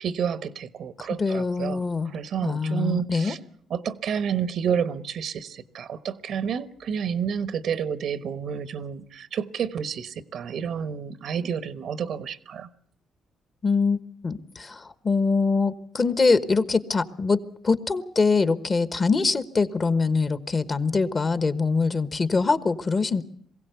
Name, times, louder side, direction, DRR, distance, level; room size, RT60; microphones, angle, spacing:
voice 1, 0.0-3.4 3.7-12.7, right 7 dB, 70° right, 1.1 m, -30 dB
voice 2, 1.0-2.1 2.4-3.3 13.6-17.4 17.6-23.2, left 4 dB, 35° left, 1.2 m, -23 dB
22.0 x 16.0 x 8.1 m
cardioid pair, 75°, 0 cm